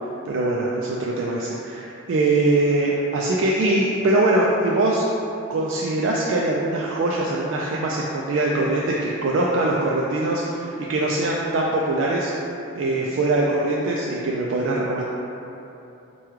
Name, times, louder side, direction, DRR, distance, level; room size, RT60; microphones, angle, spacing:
voice 1, 0.3-5.0 5.5-12.3 12.7-15.0, right 2 dB, 65° right, -3 dB, 0.3 m, -22 dB
4.7 x 2.2 x 3.0 m, 2.8 s
head